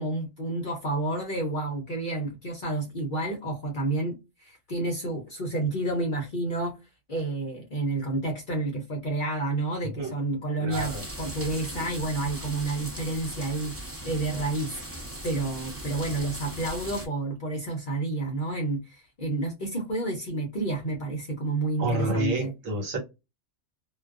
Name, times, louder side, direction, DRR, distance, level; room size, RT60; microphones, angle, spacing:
voice 1, 0.0-6.8 7.1-22.5, right 2 dB, 50° left, 0.6 m, -30 dB
voice 2, 10.6-11.0 21.8-23.0, right 1 dB, 80° right, 1.3 m, -29 dB
sound 1, 10.7-17.1, right 1 dB, 15° right, 0.5 m, -38 dB
2.3 x 2.2 x 2.3 m
omnidirectional pair, 1.4 m